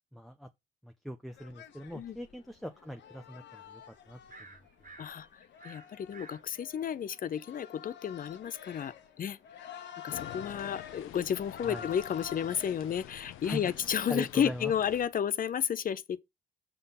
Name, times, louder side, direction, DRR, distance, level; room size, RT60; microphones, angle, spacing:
voice 1, 0.1-0.5 0.8-4.2 11.6-11.9 13.4-13.7 14.1-14.7, equal, ahead, 0.5 m, -41 dB
sound 1, 1.4-12.7, left 9 dB, 65° left, 0.9 m, -48 dB
sound 2, 3.1-3.6 3.9-7.6 8.0-10.8, right 3 dB, 40° right, 1.8 m, -54 dB
voice 2, 5.0-5.4 5.6-9.4 10.0-16.2, left 8 dB, 45° left, 0.6 m, -32 dB
sound 3, 10.1-15.1, left 13 dB, 90° left, 0.7 m, -48 dB
6.7 x 3.7 x 5.7 m
cardioid pair, 90°, 20 cm